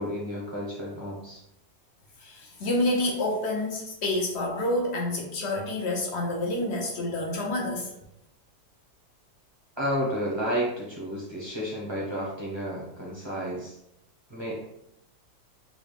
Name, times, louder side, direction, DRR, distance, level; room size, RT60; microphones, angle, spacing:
voice 1, 0.0-1.4 9.8-13.8 14.3-14.7, equal, 30° right, -5 dB, 0.5 m, -31 dB
voice 2, 2.2-7.9, left 1 dB, 65° left, 0 dB, 0.6 m, -28 dB
4.0 x 2.4 x 3.2 m, 0.81 s
omnidirectional pair, 1.8 m